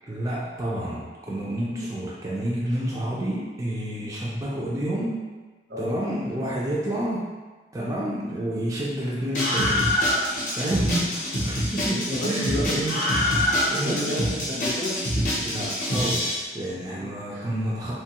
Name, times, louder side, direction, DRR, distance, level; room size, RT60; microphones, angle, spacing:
voice 1, 0.0-5.2 5.8-7.3 7.7-9.9 10.5-13.0 13.7-14.0 15.4-17.9, right 1 dB, 20° right, -6 dB, 0.3 m, -29 dB
voice 2, 1.4-1.9 3.9-4.1 5.7-6.0 6.4-6.5 11.8-13.6 13.8-15.0 16.9-17.5, left 1 dB, 75° right, -4 dB, 0.7 m, -32 dB
Screaming, 9.3-16.3, left 1 dB, 45° left, 0.6 m, -25 dB
3.0 x 2.2 x 2.9 m, 1.3 s
head